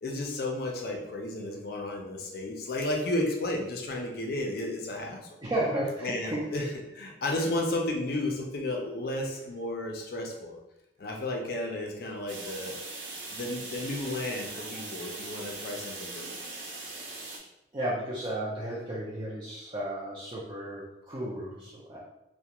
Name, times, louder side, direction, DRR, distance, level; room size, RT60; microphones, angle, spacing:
voice 1, 0.0-5.3 6.0-6.7 6.9-10.6 11.0-12.8 13.3-16.4, left 1 dB, 55° left, 2 dB, 0.4 m, -33 dB
voice 2, 5.4-6.5 17.7-22.0, right 1 dB, 25° right, -7 dB, 0.4 m, -33 dB
sound 1, 12.3-17.4, right 3 dB, 80° right, 0.6 m, -40 dB
2.3 x 2.1 x 2.9 m, 0.89 s
head